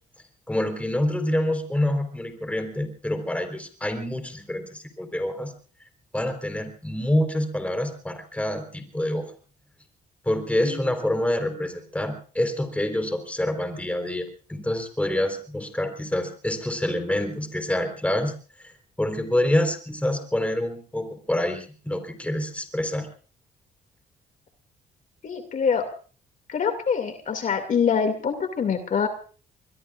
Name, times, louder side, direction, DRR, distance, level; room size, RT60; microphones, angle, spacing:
voice 1, 0.5-5.5 6.1-9.3 10.3-18.3 18.6-18.7 19.0-23.1, left 1 dB, 10° left, 6 dB, 4.0 m, -27 dB
voice 2, 25.2-25.9 26.5-29.1, left 6 dB, 55° left, 7 dB, 2.4 m, -25 dB
24.5 x 22.5 x 2.5 m, 0.40 s
cardioid pair, 85°, 16 cm